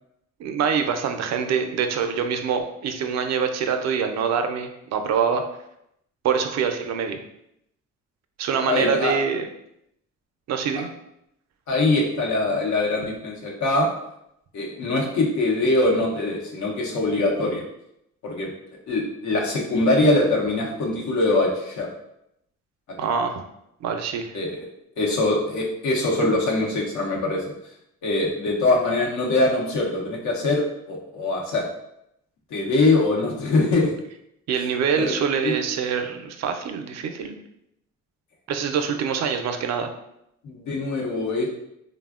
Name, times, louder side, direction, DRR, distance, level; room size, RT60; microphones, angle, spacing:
voice 1, 0.4-5.4 6.2-7.2 8.4-9.5 10.5-10.9 23.0-23.4 23.8-24.4 26.2-26.3 34.5-37.4 38.5-39.9, right 6 dB, 60° right, 6 dB, 0.4 m, -25 dB
voice 2, 8.7-9.1 11.7-13.9 14.5-17.7 18.2-18.5 18.9-21.9 24.3-24.7 25.0-27.4 28.0-31.6 32.5-33.9 34.9-35.5 40.4-41.5, left 2 dB, 70° left, -1 dB, 0.8 m, -23 dB
3.3 x 2.1 x 2.3 m, 0.79 s
cardioid pair, 90°, 30 cm